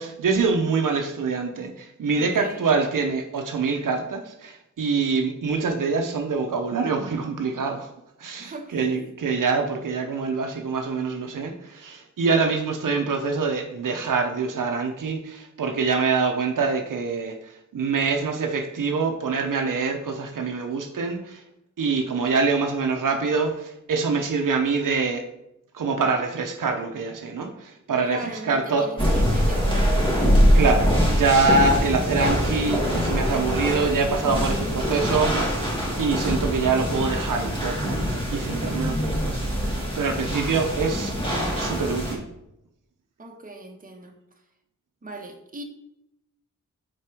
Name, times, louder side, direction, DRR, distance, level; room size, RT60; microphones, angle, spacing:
voice 1, 0.0-7.9 8.2-21.4 21.8-25.2 25.7-28.9 30.5-38.0 38.3-42.3, right 4 dB, 85° right, 4 dB, 0.7 m, -25 dB
voice 2, 2.1-2.6 8.4-9.1 28.1-30.5 40.2-40.4 43.2-44.2 45.0-45.6, right 1 dB, 25° right, 2 dB, 1.0 m, -40 dB
sound 1, 29.0-42.1, equal, 15° left, 1.6 m, -23 dB
4.5 x 4.5 x 4.7 m, 0.83 s
wide cardioid pair, 80°, 31 cm